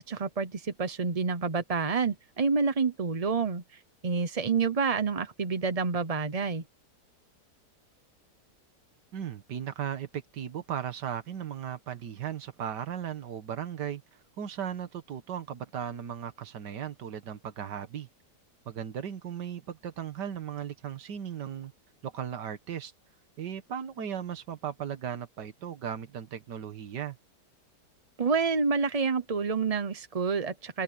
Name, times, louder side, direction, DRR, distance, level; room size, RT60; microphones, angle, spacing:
voice 1, 0.1-6.6 28.2-30.8, right 5 dB, 35° right, 0.6 m, -28 dB
voice 2, 9.1-14.0 14.4-18.1 18.7-21.7 22.0-22.9 23.4-27.2, right 9 dB, 85° right, 1.9 m, -36 dB
omnidirectional pair, 1.8 m